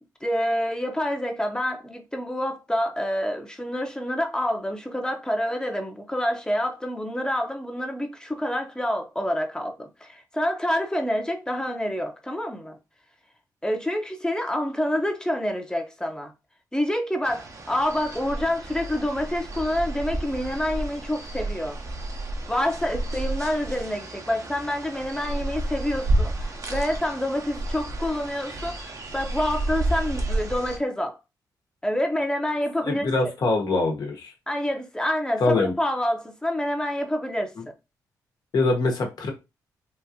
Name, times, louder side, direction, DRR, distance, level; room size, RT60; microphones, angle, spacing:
voice 1, 0.2-12.8 13.6-16.3 16.7-21.8 22.5-31.2 31.8-33.1 34.5-37.7, left 1 dB, 10° left, 0.9 m, -27 dB
sound 1, 17.2-30.8, right 2 dB, 45° right, 0.9 m, -31 dB
voice 2, 32.9-34.3 35.4-35.7 38.5-39.3, left 3 dB, 65° left, 1.1 m, -23 dB
3.8 x 2.5 x 2.8 m
cardioid pair, 65°, 7 cm